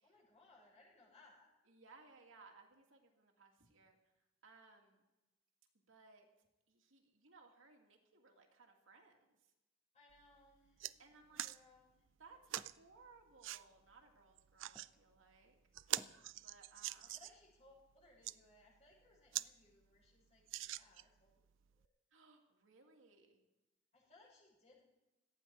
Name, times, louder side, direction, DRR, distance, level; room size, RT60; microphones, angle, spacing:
voice 1, 0.0-1.5 9.9-12.0 17.0-21.4 21.7-22.0 23.9-24.8, left 2 dB, 35° left, -4 dB, 6.8 m, -67 dB
voice 2, 1.7-4.0 4.4-5.0 5.9-6.3 6.7-9.2 11.0-11.5 12.2-15.6 16.4-17.1 22.1-23.4, right 4 dB, 85° right, 1 dB, 2.5 m, -63 dB
sound 1, 10.1-10.2 10.5-10.9 11.4-11.6 12.5-12.7 13.4-13.6 14.4-14.9 15.3-15.4 15.7-17.4 18.0-18.4 18.9-19.0 19.3-19.5 19.8-19.9 20.5-21.2 21.8-21.9, right 14 dB, 70° right, 0.4 m, -43 dB
sound 2, 11.2-15.0 15.4-16.3, equal, 5° right, 0.7 m, -65 dB
17.5 x 14.5 x 4.7 m, 1.0 s
head